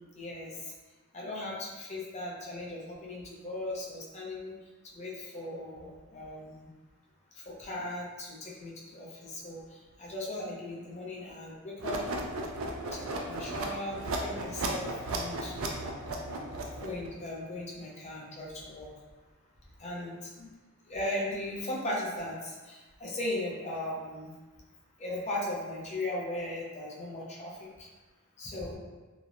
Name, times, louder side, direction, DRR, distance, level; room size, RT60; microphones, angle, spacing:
voice 1, 0.2-0.7 1.1-4.6 4.9-6.7 7.3-12.1 12.9-15.5 16.8-18.9 19.8-20.5 20.9-24.4 25.0-27.9 28.4-28.8, left 1 dB, 30° left, -4 dB, 0.5 m, -38 dB
sound 1, 11.8-17.1, right 2 dB, 65° right, 0.4 m, -35 dB
2.9 x 2.0 x 2.4 m, 1.2 s
head